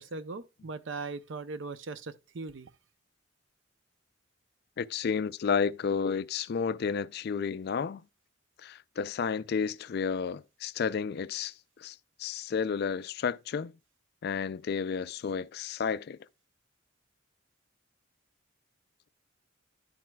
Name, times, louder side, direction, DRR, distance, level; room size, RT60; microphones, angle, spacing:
voice 1, 0.0-2.7, right 3 dB, 65° right, 0.6 m, -39 dB
voice 2, 4.8-8.0 8.6-11.5 11.8-13.7 14.2-16.2, left 6 dB, 50° left, 0.3 m, -31 dB
10.5 x 7.6 x 2.3 m
head